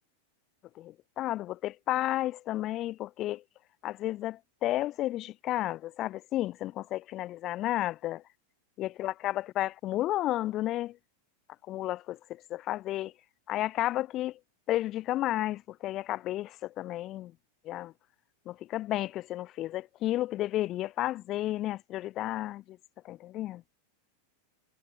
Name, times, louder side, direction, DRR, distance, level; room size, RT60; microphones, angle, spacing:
voice 1, 0.8-3.4 3.8-8.2 8.8-11.0 11.7-13.1 13.5-14.4 14.7-17.3 17.6-17.9 18.5-22.8 23.0-23.6, left 15 dB, 35° left, 0.3 m, -32 dB
figure-of-eight pair, 90°, 0 cm